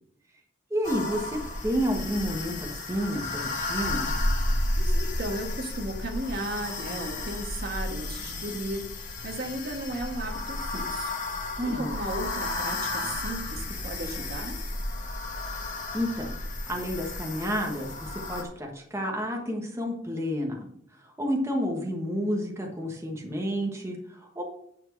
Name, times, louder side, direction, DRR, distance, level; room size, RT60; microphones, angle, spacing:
voice 1, 0.7-4.1 11.6-11.9 15.9-16.3 16.7-20.7 21.0-24.4, equal, 15° right, 0 dB, 1.2 m, -30 dB
sound 1, 0.8-18.4, left 2 dB, 40° left, 1.5 m, -32 dB
voice 2, 4.8-11.1 11.6-14.6, right 1 dB, 50° right, 3 dB, 1.5 m, -35 dB
9.7 x 4.4 x 6.2 m, 0.70 s
head